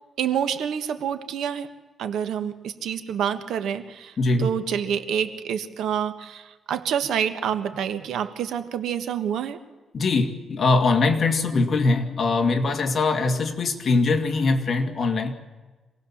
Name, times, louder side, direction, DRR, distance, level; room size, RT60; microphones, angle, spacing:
voice 1, 0.2-1.7 2.0-4.1 4.4-9.6, right 8 dB, 85° right, 9 dB, 1.5 m, -27 dB
voice 2, 4.2-4.5 9.9-15.3, left 3 dB, 40° left, 4 dB, 2.2 m, -22 dB
26.5 x 18.5 x 7.3 m, 1.2 s
cardioid pair, 150°, 0 cm